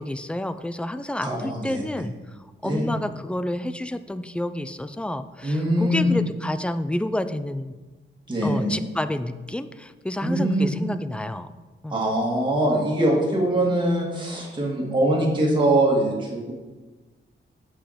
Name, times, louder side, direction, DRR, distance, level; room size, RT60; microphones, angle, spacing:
voice 1, 0.0-2.2 2.6-7.8 8.4-11.5 11.8-12.0, left 1 dB, 5° left, 12 dB, 0.3 m, -29 dB
voice 2, 1.2-1.8 2.6-2.9 5.4-6.1 8.3-8.7 10.2-10.7 11.9-16.5, right 1 dB, 25° right, -3 dB, 1.9 m, -22 dB
6.9 x 5.7 x 5.1 m, 1.2 s
wide cardioid pair, 105°, 21 cm